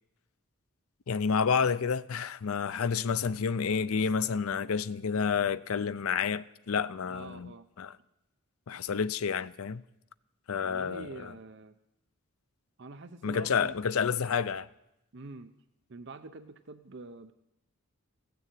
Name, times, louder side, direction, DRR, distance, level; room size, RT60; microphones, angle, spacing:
voice 1, 1.1-7.9 8.7-9.8 10.5-11.3 13.2-14.7, left 6 dB, 75° left, 0.5 m, -29 dB
voice 2, 7.1-7.7 10.6-11.7 12.8-13.8 15.1-15.5 15.9-17.3, right 3 dB, 50° right, 0.6 m, -46 dB
16.0 x 6.9 x 9.1 m
head